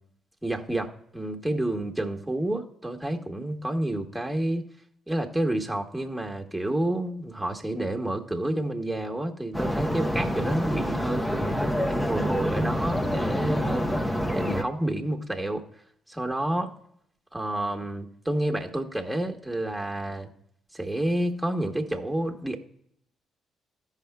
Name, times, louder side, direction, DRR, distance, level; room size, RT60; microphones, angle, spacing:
voice 1, 0.4-4.6 5.1-15.7 16.1-16.7 17.3-20.3 20.7-22.6, right 1 dB, 5° right, 2 dB, 1.6 m, -29 dB
sound 1, 9.5-14.6, equal, 15° left, 1.1 m, -27 dB
15.5 x 5.7 x 2.3 m, 0.71 s
hypercardioid pair, 45°, 0 cm